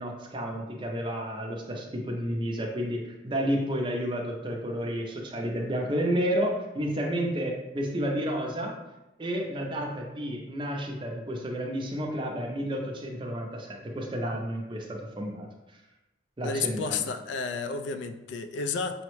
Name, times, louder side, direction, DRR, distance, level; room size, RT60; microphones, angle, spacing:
voice 1, 0.0-8.7 9.2-15.5 16.4-17.1, equal, 25° right, 1 dB, 0.5 m, -31 dB
voice 2, 16.4-19.0, left 5 dB, 75° left, 8 dB, 0.3 m, -31 dB
5.6 x 2.1 x 3.0 m, 1.0 s
head